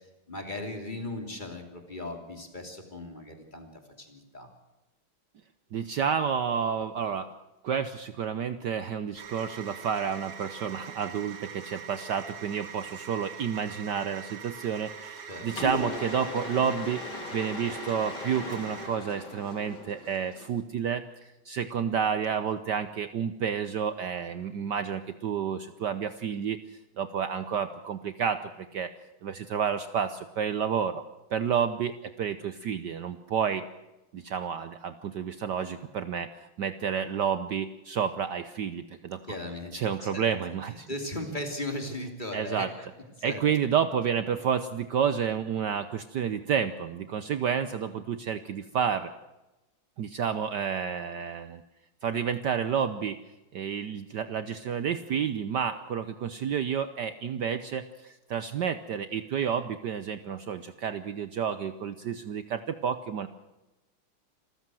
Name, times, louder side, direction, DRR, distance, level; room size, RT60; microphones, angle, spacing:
voice 1, 0.3-3.7 4.0-4.5 15.3-15.5 39.2-39.7 40.0-40.2 40.7-42.9 43.2-43.4, left 1 dB, 20° left, 4 dB, 3.1 m, -37 dB
voice 2, 5.7-7.3 7.6-28.9 29.2-31.0 31.3-33.6 34.1-39.2 39.7-40.9 42.3-42.7 43.2-49.1 50.0-51.6 52.0-53.2 53.5-63.3, right 7 dB, 60° right, 11 dB, 1.3 m, -30 dB
sound 1, 9.2-18.9, right 7 dB, 85° right, 2.7 m, -43 dB
Mechanisms, 15.5-20.6, left 2 dB, 55° left, 3.1 m, -38 dB
26.5 x 15.0 x 7.8 m, 1.0 s
omnidirectional pair, 2.3 m